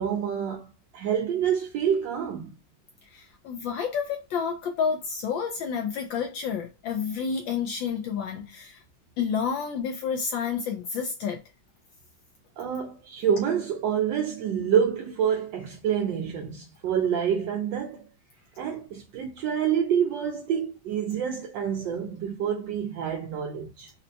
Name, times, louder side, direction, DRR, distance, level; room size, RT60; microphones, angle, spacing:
voice 1, 0.0-2.6 12.6-18.0 18.6-23.9, right 8 dB, 80° right, 1.0 m, -27 dB
voice 2, 3.1-8.8 9.2-11.4, left 6 dB, 75° left, 1.1 m, -30 dB
4.2 x 2.1 x 2.6 m
omnidirectional pair, 2.4 m